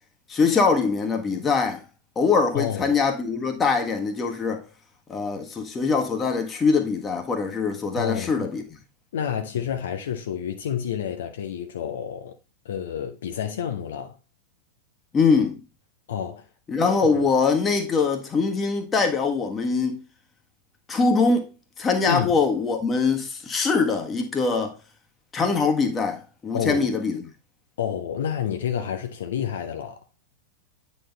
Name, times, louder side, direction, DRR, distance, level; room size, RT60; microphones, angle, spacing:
voice 1, 0.3-1.8 2.1-4.6 5.1-8.6 15.1-15.6 16.7-20.0 20.9-21.5 21.8-24.8 25.3-27.2, left 4 dB, 20° left, 1.4 m, -23 dB
voice 2, 2.5-3.0 8.0-8.5 9.1-12.3 12.6-14.2 16.1-16.5 22.1-22.3 26.5-26.9 27.8-30.0, left 9 dB, 60° left, 0.7 m, -29 dB
9.1 x 4.3 x 3.9 m
figure-of-eight pair, 90°, 0 cm